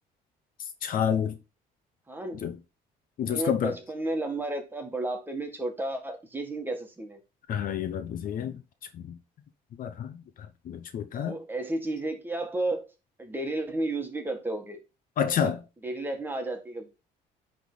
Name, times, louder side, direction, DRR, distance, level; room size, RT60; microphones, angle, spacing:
voice 1, 0.8-1.4 2.3-2.6 3.2-3.8 7.5-8.6 8.9-9.2 9.8-11.4 15.2-15.6, left 8 dB, 55° left, 0.8 m, -29 dB
voice 2, 2.1-2.4 3.3-7.2 11.2-12.9 13.2-14.8 15.4-15.5 15.8-16.9, right 2 dB, 10° right, 1.7 m, -32 dB
10.0 x 3.7 x 3.9 m
cardioid pair, 110°, 17 cm